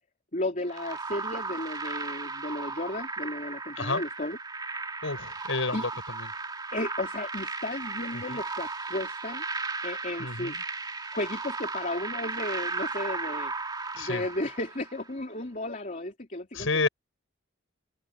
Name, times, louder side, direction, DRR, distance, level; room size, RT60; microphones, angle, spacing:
voice 1, 0.3-4.4 5.7-5.9 6.7-9.4 9.8-10.6 11.1-13.5 13.9-16.9, left 1 dB, 40° left, 3.3 m, -34 dB
sound 1, 0.7-15.1, right 3 dB, 20° right, 2.3 m, -35 dB
voice 2, 5.0-5.9 8.3-8.4 10.2-10.5 14.0-14.2 16.5-16.9, left 3 dB, 75° left, 5.6 m, -29 dB
open air
head